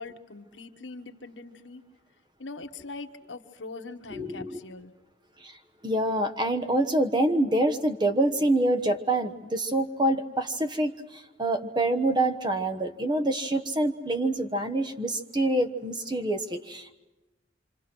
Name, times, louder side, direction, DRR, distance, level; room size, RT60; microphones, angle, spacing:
voice 1, 0.0-1.8 2.4-4.9, left 3 dB, 90° left, 6 dB, 1.4 m, -42 dB
voice 2, 4.1-4.6 5.4-5.5 5.8-16.9, right 1 dB, 25° right, 9 dB, 1.2 m, -26 dB
27.0 x 26.0 x 6.3 m, 1.1 s
head